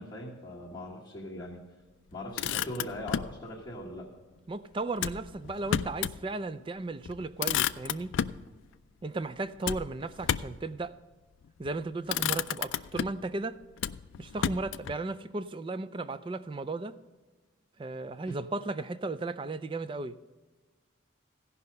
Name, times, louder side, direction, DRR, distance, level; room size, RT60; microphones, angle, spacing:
voice 1, 0.0-1.6 2.1-4.1, left 1 dB, 20° left, -9 dB, 1.5 m, -40 dB
Motor vehicle (road), 2.1-3.4 5.0-6.2 6.6-6.7 7.0-8.4 9.6-10.6 11.5-11.7 12.1-13.3 13.8-15.0, left 9 dB, 70° left, 0.3 m, -32 dB
voice 2, 4.5-8.1 9.0-10.9 11.6-13.6 14.2-16.9 17.8-20.2, right 3 dB, 25° right, 13 dB, 0.3 m, -35 dB
16.0 x 5.6 x 5.3 m, 1.3 s
head